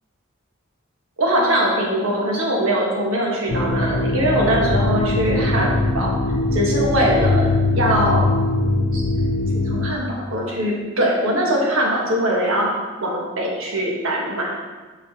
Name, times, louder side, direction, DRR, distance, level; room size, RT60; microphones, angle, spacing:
voice 1, 1.2-6.1 6.5-8.3 8.9-9.0 9.7-12.7 13.0-14.5, right 1 dB, 85° right, -2 dB, 1.4 m, -21 dB
sound 1, 3.5-9.9, left 2 dB, 60° left, 0.4 m, -21 dB
8.3 x 4.7 x 2.9 m, 1.3 s
head